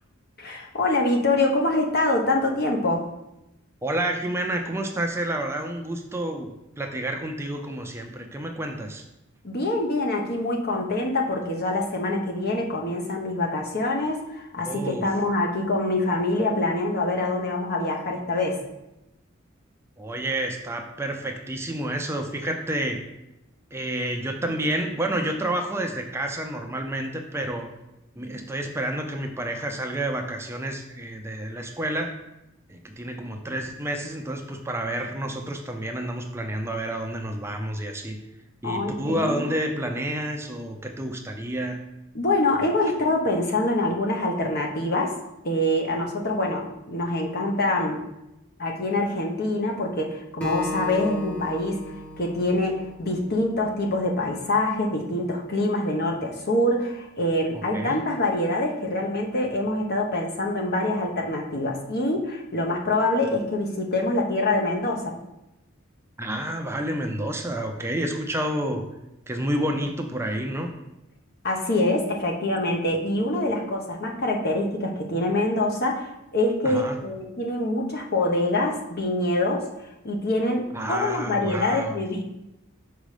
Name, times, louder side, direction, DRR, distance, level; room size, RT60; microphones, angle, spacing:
voice 1, 0.4-3.0 9.4-18.6 38.6-39.4 42.1-45.2 45.4-48.0 48.6-51.9 52.2-65.2 71.4-79.7 80.0-82.2, left 2 dB, 50° left, 1 dB, 1.1 m, -25 dB
voice 2, 3.8-6.5 6.8-9.0 14.7-15.0 20.0-23.0 23.7-27.7 28.2-32.1 32.7-38.2 38.6-41.8 57.5-58.0 66.2-68.8 69.3-70.7 76.6-76.9 80.7-82.0, right 1 dB, 10° right, 3 dB, 0.6 m, -29 dB
Acoustic guitar, 50.4-53.7, left 1 dB, 5° left, 1.0 m, -35 dB
6.3 x 5.1 x 5.0 m, 0.90 s
head